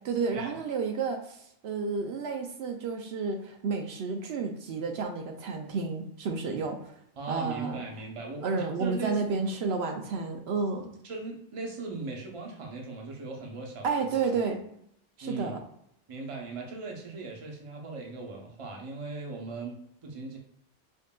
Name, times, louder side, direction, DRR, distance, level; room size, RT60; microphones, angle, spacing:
voice 1, 0.0-6.9 7.3-7.8 8.4-10.9 13.8-14.6 15.2-15.6, right 4 dB, 75° right, 3 dB, 0.8 m, -31 dB
voice 2, 7.2-9.4 11.0-13.9 15.2-15.5 16.1-20.4, right 3 dB, 35° right, 0 dB, 0.7 m, -38 dB
5.3 x 2.5 x 2.2 m, 0.71 s
omnidirectional pair, 1.1 m